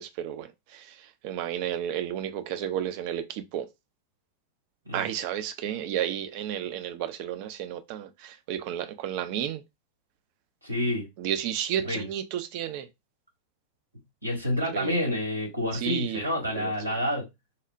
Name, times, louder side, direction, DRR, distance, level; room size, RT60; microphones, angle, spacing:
voice 1, 0.0-3.7 4.9-9.6 11.2-12.9 14.7-15.0 15.7-16.2 16.5-17.0, right 10 dB, 45° right, 0.4 m, -32 dB
voice 2, 10.6-11.1 11.9-12.0 14.2-17.3, left 1 dB, 85° right, 1.9 m, -28 dB
4.2 x 2.1 x 2.5 m
figure-of-eight pair, 90°, 0 cm